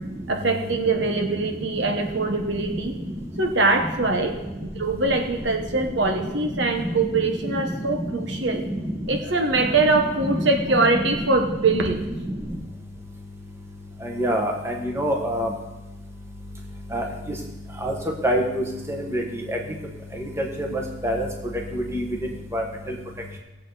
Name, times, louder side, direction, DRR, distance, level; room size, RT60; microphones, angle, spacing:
voice 1, 0.3-3.0 3.4-8.6 9.1-12.3, right 3 dB, 60° right, 4 dB, 1.2 m, -23 dB
voice 2, 14.2-15.5 16.9-17.0 17.8-17.9 18.2-18.4 19.1-19.2 21.0-21.2 21.9-22.0 22.5-22.6, equal, 15° right, 0 dB, 1.4 m, -23 dB
17.5 x 8.1 x 4.1 m, 1.0 s
head